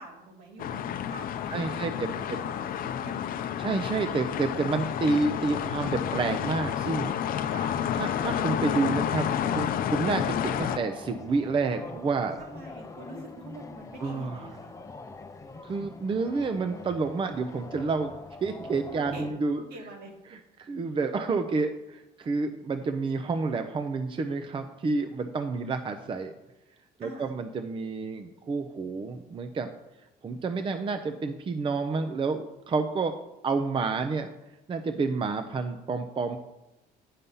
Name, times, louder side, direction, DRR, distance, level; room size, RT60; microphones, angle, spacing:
voice 1, 0.0-3.2 7.5-7.8 12.4-14.7 18.9-20.1 27.0-27.3, right 1 dB, 70° right, 1 dB, 2.1 m, -45 dB
Town street February, 0.6-10.8, left 9 dB, 55° left, 0.6 m, -30 dB
voice 2, 1.5-2.1 3.6-7.1 7.9-12.4 14.0-14.5 15.6-18.1 18.4-19.6 20.3-26.3 27.0-29.7 30.2-33.1 33.4-34.3 34.7-36.4, right 4 dB, 30° right, 7 dB, 0.6 m, -29 dB
sound 1, 8.3-19.3, left 3 dB, 20° left, 0.6 m, -44 dB
8.3 x 5.7 x 5.4 m, 0.96 s
cardioid pair, 110°, 17 cm